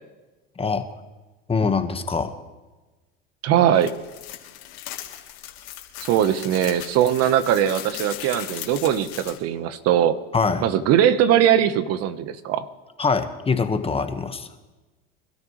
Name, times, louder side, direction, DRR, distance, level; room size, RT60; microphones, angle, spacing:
voice 1, 0.6-0.9 1.5-2.4 10.3-10.6 13.0-14.5, left 4 dB, 20° left, 8 dB, 1.3 m, -23 dB
voice 2, 3.4-3.9 6.0-10.2 10.6-12.7, right 10 dB, 55° right, 12 dB, 1.1 m, -20 dB
sound 1, 3.7-9.4, left 13 dB, 70° left, 2.9 m, -38 dB
26.5 x 12.5 x 3.2 m, 1.2 s
hypercardioid pair, 90°, 30 cm